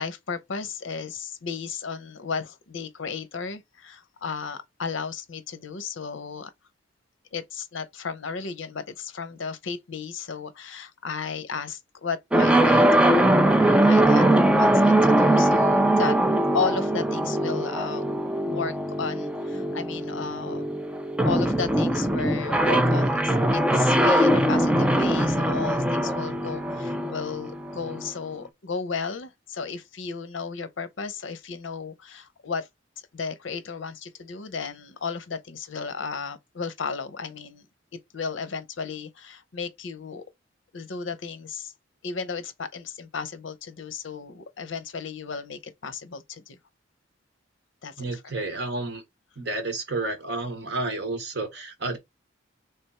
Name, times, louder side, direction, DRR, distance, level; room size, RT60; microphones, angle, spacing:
voice 1, 0.0-6.5 7.3-16.2 16.5-18.0 18.4-20.7 21.2-32.7 33.1-37.7 38.1-40.2 40.7-41.7 42.0-46.6 47.8-48.2, left 5 dB, 75° left, 0.7 m, -34 dB
sound 1, 12.3-28.1, right 1 dB, 5° right, 0.4 m, -21 dB
voice 2, 48.0-49.0 49.4-52.0, right 2 dB, 60° right, 1.3 m, -30 dB
3.4 x 3.4 x 4.2 m
head